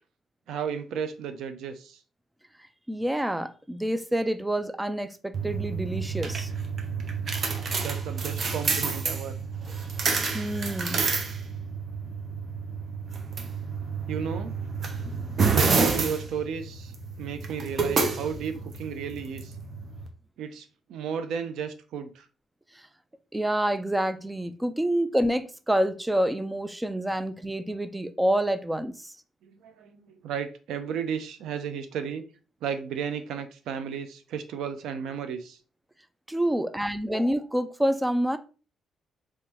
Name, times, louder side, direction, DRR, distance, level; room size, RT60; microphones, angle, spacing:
voice 1, 0.5-2.0 7.8-9.3 14.1-14.6 15.5-19.5 20.4-22.3 29.4-32.3 32.6-35.6, right 7 dB, 80° right, 0.5 m, -34 dB
voice 2, 2.9-6.5 10.3-11.1 15.1-15.4 23.3-29.1 36.3-38.4, right 1 dB, 10° right, 0.4 m, -27 dB
sound 1, 5.3-20.1, right 4 dB, 50° right, 0.7 m, -29 dB
3.6 x 3.1 x 2.9 m
cardioid pair, 90°, 0 cm